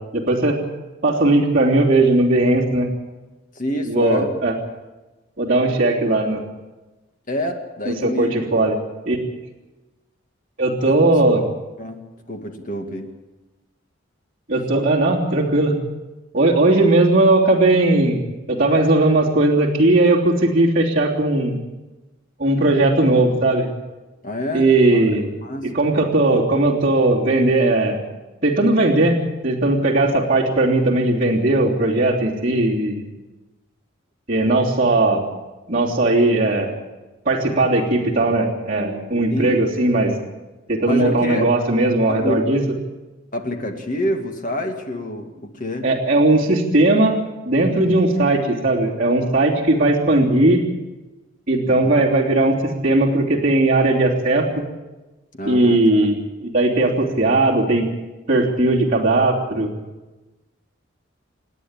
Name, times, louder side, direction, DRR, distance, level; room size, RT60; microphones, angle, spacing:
voice 1, 0.1-0.6 1.0-2.9 3.9-4.5 5.4-6.4 7.8-8.7 9.1-9.2 10.6-11.4 14.5-15.7 16.3-21.6 22.4-23.7 24.5-25.3 25.7-28.0 28.4-33.0 34.3-35.2 35.7-36.8 37.2-40.1 40.7-42.6 45.8-47.2 47.4-50.6 51.5-52.5 52.8-54.6 55.4-57.8 58.3-59.7, right 2 dB, 40° right, -6 dB, 3.2 m, -18 dB
voice 2, 3.6-4.3 7.3-8.3 10.9-11.1 11.8-12.0 12.3-13.1 24.2-25.1 25.4-25.7 39.3-39.6 40.9-41.5 42.1-42.4 43.3-45.9 47.8-48.0 51.6-51.9 55.3-56.1, left 1 dB, 40° left, 4 dB, 2.3 m, -27 dB
28.5 x 10.0 x 9.0 m, 1.1 s
head